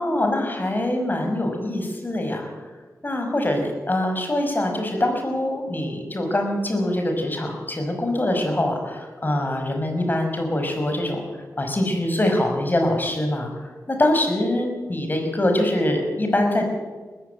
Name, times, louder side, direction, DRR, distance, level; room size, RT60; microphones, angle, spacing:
voice 1, 0.0-2.5 3.0-11.2 11.6-13.5 13.9-16.7, left 1 dB, 30° left, 4 dB, 5.4 m, -23 dB
20.0 x 15.0 x 9.2 m, 1.4 s
wide cardioid pair, 80°, 6 cm